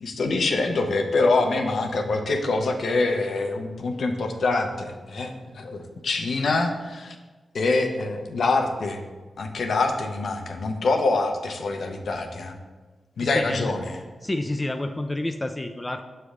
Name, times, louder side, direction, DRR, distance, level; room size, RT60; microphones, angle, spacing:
voice 1, 0.0-7.2 7.5-9.0 9.4-12.6 13.2-14.0, left 3 dB, 75° left, 4 dB, 0.7 m, -25 dB
voice 2, 13.3-13.8 14.2-16.0, left 1 dB, 25° left, 6 dB, 0.4 m, -29 dB
6.9 x 3.3 x 5.0 m, 1.3 s
cardioid pair, 45°, 0 cm